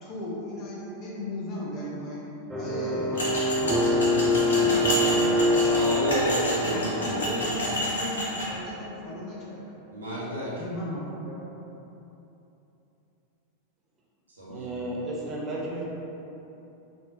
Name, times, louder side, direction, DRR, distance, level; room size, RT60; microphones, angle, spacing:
voice 1, 0.0-3.2 3.6-4.1 4.4-6.2 6.6-9.7 10.6-11.4, left 1 dB, 35° left, -5 dB, 0.9 m, -36 dB
sound 1, 2.5-7.7, left 1 dB, 10° right, 0.4 m, -25 dB
sound 2, 3.2-8.5, equal, 65° left, 0.9 m, -30 dB
voice 2, 5.8-7.7 9.9-10.5 14.4-14.7, right 1 dB, 75° right, -9 dB, 1.3 m, -31 dB
voice 3, 14.5-15.8, right 1 dB, 25° right, -5 dB, 0.8 m, -33 dB
4.4 x 3.0 x 3.0 m, 3.0 s
figure-of-eight pair, 90°, 0 cm